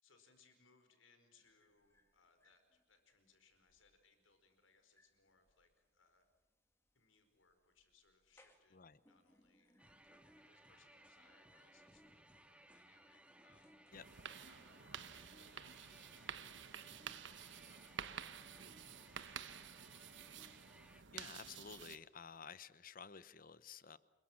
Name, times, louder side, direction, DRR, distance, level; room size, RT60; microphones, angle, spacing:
voice 1, 0.0-6.2 6.9-13.8 14.4-20.3, left 4 dB, 85° left, 8 dB, 4.9 m, -73 dB
sound 1, 1.4-16.7, left 1 dB, 15° left, 2.4 m, -76 dB
sound 2, 9.8-21.0, right 1 dB, 5° right, 1.7 m, -64 dB
sound 3, 13.9-22.0, right 8 dB, 65° right, 1.2 m, -51 dB
voice 2, 20.9-24.0, left 6 dB, 45° left, 16 dB, 0.9 m, -53 dB
29.5 x 22.0 x 7.4 m, 1.0 s
head